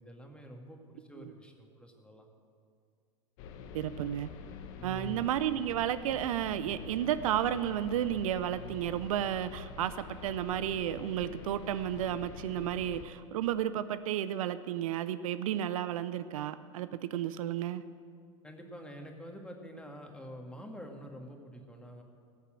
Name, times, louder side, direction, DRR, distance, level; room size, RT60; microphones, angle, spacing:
voice 1, 0.0-2.3 4.8-5.3 18.4-22.0, equal, 5° left, 2 dB, 1.9 m, -47 dB
sound 1, 3.4-13.0, left 5 dB, 60° left, 1.1 m, -46 dB
voice 2, 3.7-4.3 4.8-17.8, right 11 dB, 75° right, 13 dB, 0.5 m, -32 dB
17.5 x 6.8 x 7.6 m, 2.2 s
hypercardioid pair, 95°, 18 cm